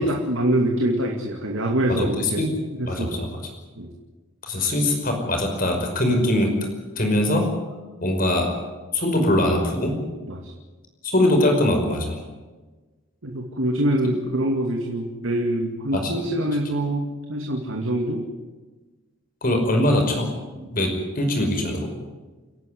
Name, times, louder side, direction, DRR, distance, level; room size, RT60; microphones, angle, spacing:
voice 1, 0.0-2.4 2.7-3.2 3.8-3.9 10.3-10.4 13.2-18.2, right 1 dB, 70° right, 1 dB, 2.4 m, -24 dB
voice 2, 1.9-3.4 4.4-6.5 7.0-7.5 8.0-8.5 8.9-10.0 11.0-12.2 15.9-16.2 19.4-20.3 20.5-21.9, left 1 dB, 45° left, 3 dB, 5.4 m, -22 dB
30.0 x 11.5 x 9.4 m, 1.3 s
head